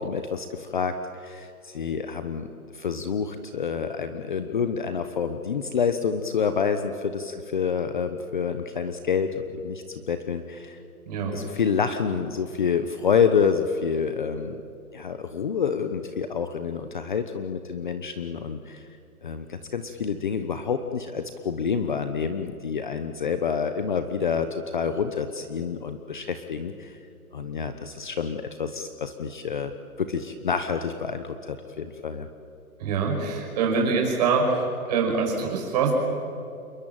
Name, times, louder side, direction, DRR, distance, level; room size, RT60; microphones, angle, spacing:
voice 1, 0.0-10.8 11.3-14.6 14.9-18.8 19.2-27.0 27.3-29.7 30.0-32.3, left 6 dB, 30° left, 9 dB, 1.0 m, -28 dB
voice 2, 32.8-34.5 34.9-35.9, right 5 dB, 25° right, 0 dB, 5.6 m, -24 dB
28.5 x 22.5 x 9.1 m, 2.7 s
hypercardioid pair, 170°, 46 cm